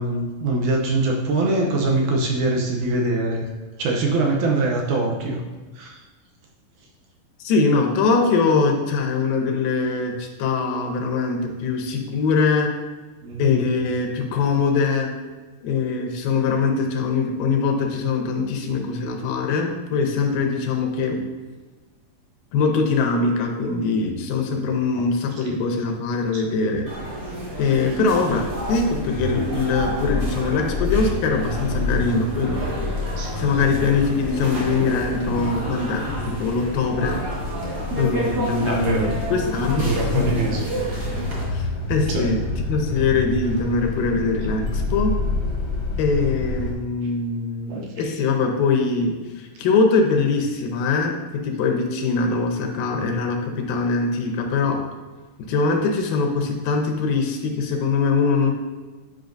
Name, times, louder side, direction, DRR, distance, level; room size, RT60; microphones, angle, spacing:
voice 1, 0.0-3.5 3.8-5.4 5.7-6.0 13.2-13.9 25.0-25.1 25.5-25.6 26.3-26.4 31.6-32.5 33.2-33.3 38.6-39.3 39.8-40.7 42.1-42.3 47.7-47.9, right 2 dB, 75° right, 0 dB, 2.0 m, -24 dB
voice 2, 7.4-12.7 13.4-15.1 15.6-21.2 22.5-26.9 27.6-32.7 33.4-36.1 36.4-37.2 38.0-40.5 41.5-42.4 42.7-45.1 46.0-49.1 49.4-54.8 55.5-58.5, left 4 dB, 85° left, 2 dB, 2.7 m, -22 dB
sound 1, 26.9-41.4, right 1 dB, 45° right, 1.4 m, -31 dB
sound 2, 28.0-46.7, left 2 dB, 30° left, 1.3 m, -29 dB
10.0 x 5.6 x 2.6 m, 1.3 s
omnidirectional pair, 4.0 m